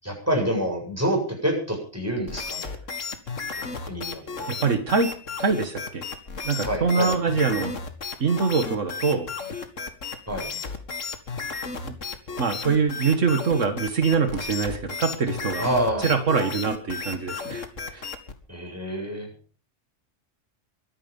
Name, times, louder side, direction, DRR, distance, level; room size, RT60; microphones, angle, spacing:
voice 1, 0.0-2.8 3.6-4.5 6.6-7.2 10.3-10.5 15.6-16.1 18.5-19.3, equal, 10° right, 1 dB, 8.0 m, -27 dB
sound 1, 2.3-18.4, left 4 dB, 80° left, 2.2 m, -34 dB
voice 2, 4.5-6.0 6.4-7.8 8.2-9.3 11.8-12.0 12.4-15.7 16.0-17.6 17.9-18.1, right 5 dB, 80° right, 7 dB, 2.0 m, -24 dB
23.5 x 10.0 x 5.4 m, 0.39 s
omnidirectional pair, 1.3 m